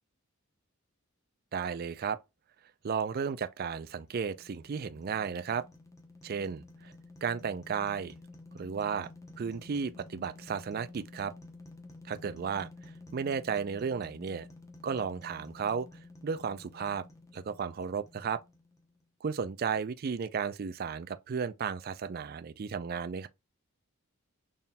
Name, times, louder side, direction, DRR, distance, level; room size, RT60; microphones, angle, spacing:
voice 1, 1.5-2.2 2.8-5.7 6.2-6.6 7.2-8.1 8.5-9.1 9.4-11.3 12.0-12.7 13.1-14.5 14.8-15.9 16.2-17.0 17.3-18.4 19.2-23.3, right 6 dB, 45° right, 0.4 m, -34 dB
sound 1, 3.8-19.0, left 2 dB, 15° left, 0.8 m, -52 dB
4.1 x 3.7 x 2.2 m
head